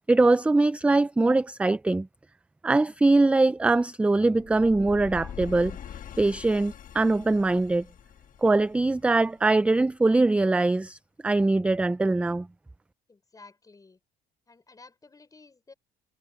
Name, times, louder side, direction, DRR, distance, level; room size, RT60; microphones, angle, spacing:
voice 1, 0.0-2.1 2.6-5.8 6.2-7.9 8.4-12.5, right 2 dB, 5° right, 0.3 m, -22 dB
sound 1, 4.4-9.4, left 9 dB, 50° left, 1.8 m, -43 dB
voice 2, 13.1-14.0 14.5-15.7, left 3 dB, 20° left, 5.5 m, -53 dB
cardioid pair, 110°, 17 cm